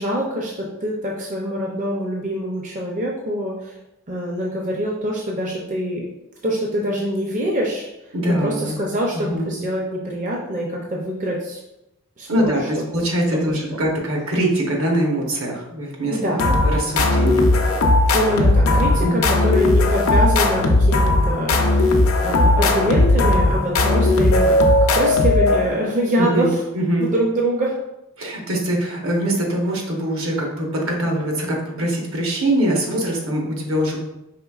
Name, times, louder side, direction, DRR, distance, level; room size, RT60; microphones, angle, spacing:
voice 1, 0.0-3.7 4.1-6.0 6.4-7.9 8.3-11.6 12.2-12.9 13.3-13.5 16.1-16.4 18.1-24.6 24.9-26.5 27.0-27.7, equal, 35° right, -2 dB, 0.5 m, -24 dB
voice 2, 8.1-8.9 9.1-9.6 12.3-17.4 19.0-19.2 26.1-27.1 28.2-34.0, right 1 dB, 70° right, 0 dB, 0.9 m, -23 dB
sound 1, 16.4-25.9, left 2 dB, 70° left, 0.5 m, -17 dB
4.9 x 3.3 x 2.3 m, 0.91 s
head